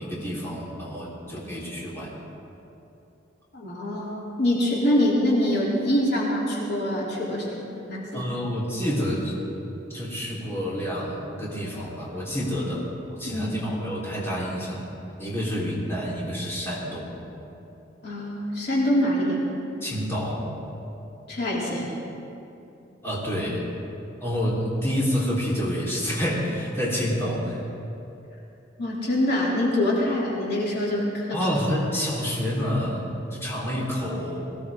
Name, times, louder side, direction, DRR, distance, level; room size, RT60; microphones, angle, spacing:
voice 1, 0.0-2.1 8.1-9.3 9.9-12.9 13.2-14.9 15.2-17.1 19.8-20.5 23.0-23.7 24.2-27.6 31.3-34.5, equal, 15° left, -7 dB, 3.8 m, -28 dB
voice 2, 3.5-8.3 13.3-13.6 18.0-19.4 21.3-22.0 28.8-31.4, left 1 dB, 60° left, -5 dB, 3.1 m, -25 dB
22.0 x 17.0 x 3.7 m, 2.8 s
head